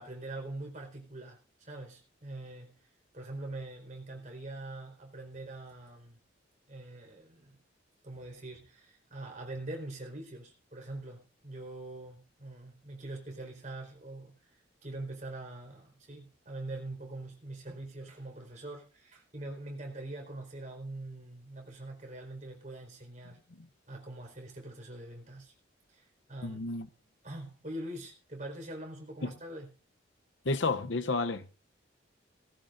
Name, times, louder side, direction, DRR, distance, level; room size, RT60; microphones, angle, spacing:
voice 1, 0.0-2.8 3.1-6.2 6.7-7.6 8.0-23.4 23.9-25.5 25.9-26.6 27.2-29.7, right 2 dB, 40° right, 4.6 m, -43 dB
voice 2, 26.4-26.9 29.2-29.3 30.4-31.5, left 3 dB, 70° left, 0.8 m, -31 dB
18.5 x 15.5 x 2.6 m
head